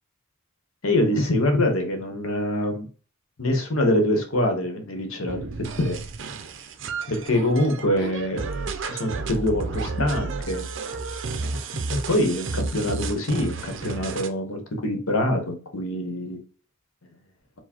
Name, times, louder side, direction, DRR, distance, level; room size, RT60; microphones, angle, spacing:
voice 1, 0.8-2.9 3.4-5.4 5.8-6.0 7.1-8.4 8.9-10.6 11.9-16.4, left 1 dB, 75° left, 5 dB, 1.2 m, -24 dB
sound 1, 5.3-14.3, right 4 dB, 60° right, 0.5 m, -32 dB
4.8 x 2.2 x 4.3 m, 0.39 s
head